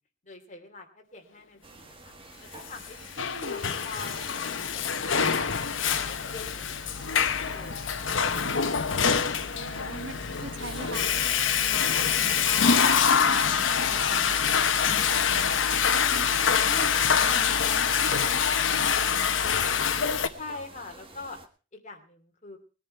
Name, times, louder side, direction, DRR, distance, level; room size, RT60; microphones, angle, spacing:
voice 1, 0.2-2.1 2.5-3.0 3.5-5.7 6.1-6.7 7.0-8.2 20.4-21.4 21.7-22.6, left 3 dB, 40° left, 4 dB, 2.8 m, -45 dB
sound 1, 1.6-21.5, right 2 dB, 30° right, 1.6 m, -49 dB
Water / Toilet flush, 2.8-20.3, left 7 dB, 80° left, 1.0 m, -25 dB
voice 2, 3.2-3.6 9.5-19.4, right 3 dB, 80° right, 8 dB, 1.8 m, -43 dB
21.0 x 10.5 x 4.4 m, 0.37 s
head